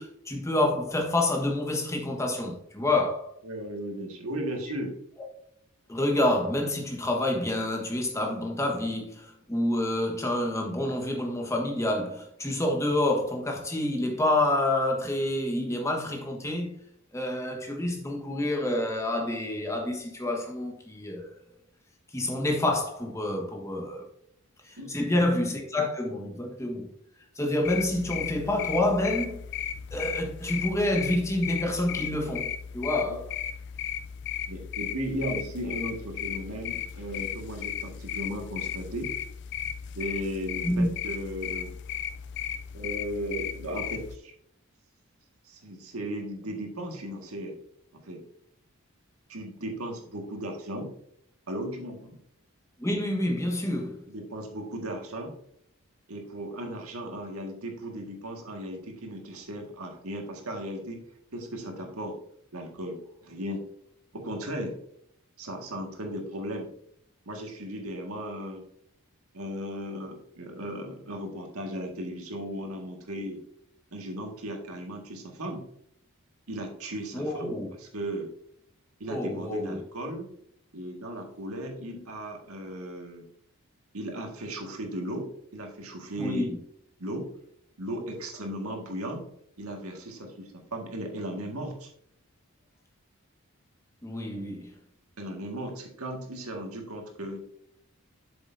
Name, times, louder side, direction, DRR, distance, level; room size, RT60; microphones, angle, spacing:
voice 1, 0.0-3.3 5.9-16.8 17.1-21.4 22.1-24.0 24.6-26.9 27.3-29.4 29.9-33.3 40.6-40.9 52.8-54.0 77.1-77.7 79.1-79.8 86.2-86.6 94.0-94.7, left 1 dB, 15° left, 1.3 m, -28 dB
voice 2, 3.4-4.9 24.8-25.1 33.1-33.2 34.5-39.1 39.9-41.7 42.7-44.3 45.4-47.6 47.9-48.2 49.3-50.9 51.5-52.2 54.1-55.3 56.1-61.0 61.3-62.2 62.5-63.7 64.1-64.8 65.4-66.7 67.2-68.6 69.3-73.4 73.9-75.6 76.5-78.3 79.0-80.3 80.7-83.3 83.9-86.5 87.0-87.3 87.8-89.3 89.6-91.9 95.2-97.4, equal, 85° right, 1.7 m, -36 dB
sound 1, 27.6-44.2, left 9 dB, 50° left, 0.3 m, -35 dB
8.3 x 6.9 x 2.6 m
head